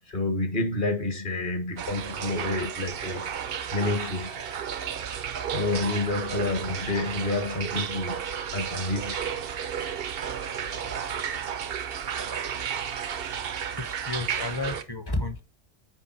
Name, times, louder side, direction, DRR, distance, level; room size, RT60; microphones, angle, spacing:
voice 1, 0.1-3.3 3.7-4.4 5.5-8.2 8.5-9.2 10.8-10.9 13.0-13.1 13.6-13.8, left 2 dB, 45° left, 1.6 m, -29 dB
sound 1, 1.8-14.8, right 8 dB, 60° right, 0.8 m, -33 dB
voice 2, 13.8-15.4, left 2 dB, 20° left, 1.0 m, -31 dB
9.2 x 3.5 x 5.9 m
omnidirectional pair, 1.2 m